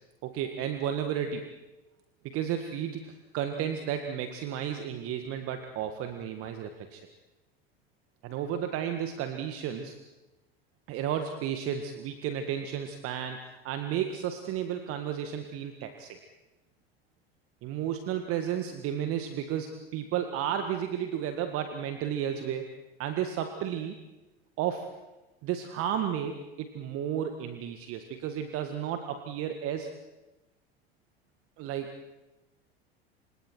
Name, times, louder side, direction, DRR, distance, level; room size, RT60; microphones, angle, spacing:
voice 1, 0.2-1.5 2.2-7.0 8.2-10.0 10.9-16.2 17.6-22.6 23.0-23.9 24.6-24.9 25.4-29.9 31.6-31.9, right 9 dB, 45° right, 7 dB, 1.8 m, -33 dB
29.0 x 26.0 x 4.6 m, 1.1 s
figure-of-eight pair, 75°, 31 cm